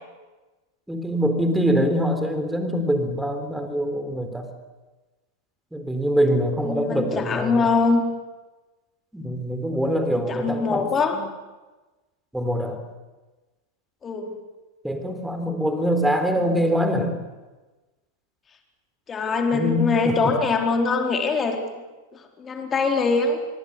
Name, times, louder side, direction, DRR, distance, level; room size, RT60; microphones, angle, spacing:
voice 1, 0.9-4.5 5.7-7.7 9.1-10.9 11.1-11.2 12.3-12.8 14.8-17.2 19.5-20.1, equal, 5° right, 7 dB, 3.9 m, -24 dB
voice 2, 6.6-8.0 10.1-11.2 14.0-14.3 19.1-21.8 22.4-23.4, left 4 dB, 20° left, 3 dB, 4.2 m, -23 dB
27.0 x 23.0 x 8.3 m, 1.2 s
figure-of-eight pair, 90°, 0 cm